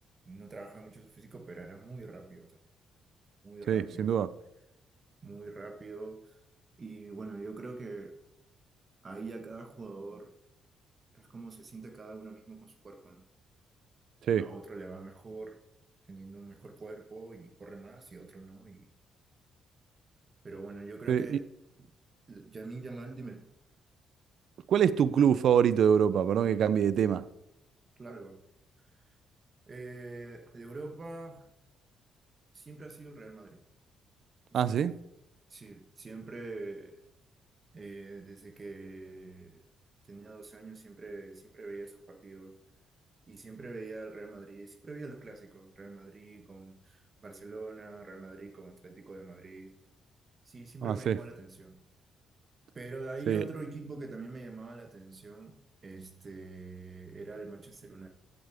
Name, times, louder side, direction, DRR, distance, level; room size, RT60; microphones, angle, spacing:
voice 1, 0.2-2.6 3.4-4.2 5.2-6.4 6.8-8.1 9.0-10.3 11.1-13.2 14.3-15.6 16.1-18.9 20.4-21.5 21.8-21.9 22.3-23.5 28.0-28.4 28.8-29.0 29.7-31.5 32.5-33.6 34.5-34.8 35.5-37.0 37.7-39.6 40.1-42.6 43.3-49.7 50.4-51.8 52.7-58.1, right 3 dB, 35° right, 5 dB, 1.2 m, -45 dB
voice 2, 3.7-4.3 14.3-14.5 21.1-21.4 24.7-27.3 34.5-35.0 50.8-51.2 53.3-53.4, right 8 dB, 65° right, 16 dB, 0.5 m, -25 dB
15.0 x 8.2 x 3.5 m, 0.86 s
cardioid pair, 90°, 0 cm